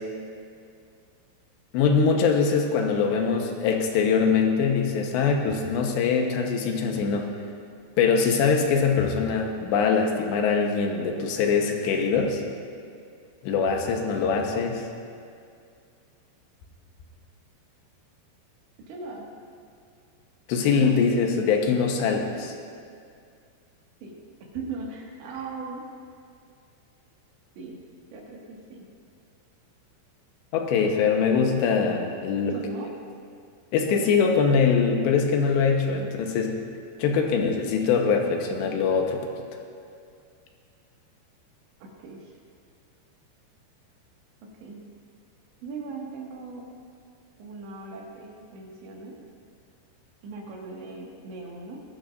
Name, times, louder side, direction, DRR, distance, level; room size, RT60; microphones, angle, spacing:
voice 1, 1.7-7.3 8.0-12.4 13.4-14.8 20.5-22.5 30.5-32.5 33.7-36.5 37.0-39.2, left 5 dB, 80° left, 2 dB, 3.3 m, -23 dB
voice 2, 18.9-19.3 24.0-24.1 24.5-25.8 27.6-27.8 28.1-28.9 32.5-32.9 41.8-42.3 44.6-44.8 45.6-46.7 47.4-49.2 50.2-51.8, right 3 dB, 80° right, -3 dB, 4.2 m, -39 dB
21.5 x 12.5 x 2.6 m, 2.3 s
omnidirectional pair, 5.1 m